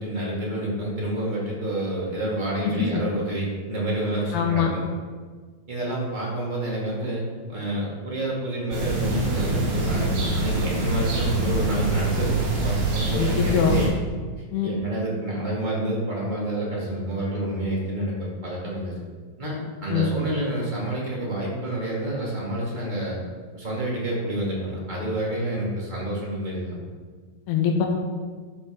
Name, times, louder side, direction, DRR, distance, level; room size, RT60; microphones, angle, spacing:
voice 1, 0.0-4.9 5.7-7.2 7.5-12.4 12.6-13.9 14.6-18.9 19.4-23.2 23.5-26.8, right 1 dB, 20° right, -5 dB, 1.2 m, -28 dB
voice 2, 4.3-4.7 13.2-13.8 14.5-14.7 19.9-20.1 27.5-27.9, left 7 dB, 85° left, 1 dB, 3.3 m, -23 dB
sound 1, 8.7-13.9, right 2 dB, 55° right, 3.4 m, -25 dB
11.5 x 5.2 x 5.3 m, 1.5 s
omnidirectional pair, 4.5 m